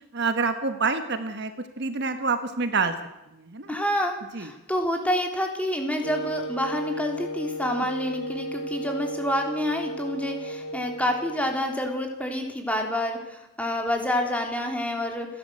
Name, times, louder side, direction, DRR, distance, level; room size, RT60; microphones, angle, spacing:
voice 1, 0.1-2.9 3.3-3.7 4.3-4.5, right 4 dB, 55° right, 8 dB, 1.5 m, -27 dB
voice 2, 3.7-15.4, left 1 dB, 5° left, 3 dB, 3.4 m, -28 dB
Wind instrument woodwind instrument, 6.0-11.7, equal, 85° left, 6.9 m, -35 dB
29.5 x 11.5 x 8.0 m, 0.93 s
head